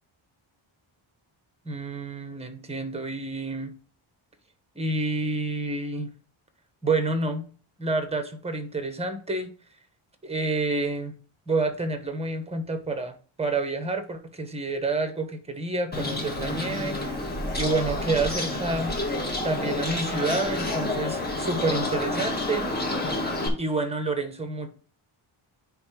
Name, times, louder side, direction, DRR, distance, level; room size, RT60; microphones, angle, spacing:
voice 1, 1.6-3.7 4.7-6.1 6.8-7.4 7.8-9.5 10.2-11.1 11.5-17.0 17.6-18.9 19.4-22.6 23.6-24.7, right 3 dB, 10° right, 7 dB, 1.2 m, -28 dB
Bird, 15.9-23.5, left 2 dB, 20° left, 1.8 m, -29 dB
9.6 x 3.4 x 4.8 m, 0.41 s
wide cardioid pair, 145°, 49 cm